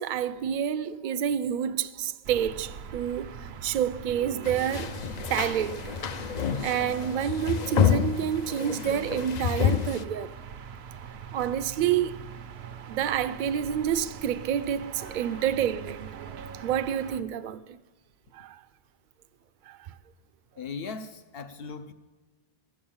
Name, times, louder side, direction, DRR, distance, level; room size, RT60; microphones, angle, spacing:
voice 1, 0.0-5.0 5.3-5.9 6.6-10.3 11.3-12.2 12.9-16.2 16.5-17.8 18.3-18.6 19.7-19.8, right 9 dB, 60° right, 0.6 m, -28 dB
sound 1, 2.2-17.2, right 7 dB, 80° right, 0.9 m, -42 dB
sound 2, 4.4-10.0, left 8 dB, 55° left, 0.5 m, -28 dB
voice 2, 15.0-15.5 20.6-21.9, left 5 dB, 70° left, 1.0 m, -39 dB
15.0 x 7.2 x 8.7 m
omnidirectional pair, 1.0 m